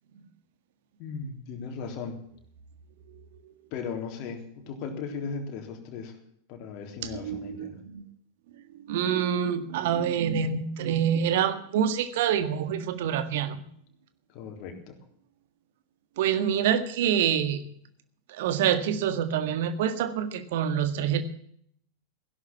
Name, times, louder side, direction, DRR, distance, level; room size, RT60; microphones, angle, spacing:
voice 1, 1.0-2.2 3.7-6.2 6.5-7.8 14.3-15.0, left 5 dB, 40° left, 4 dB, 3.6 m, -37 dB
voice 2, 7.1-8.0 8.7-13.6 16.2-17.6 18.3-21.2, right 8 dB, 55° right, 11 dB, 1.7 m, -26 dB
16.5 x 11.5 x 7.3 m, 0.66 s
figure-of-eight pair, 90°, 0 cm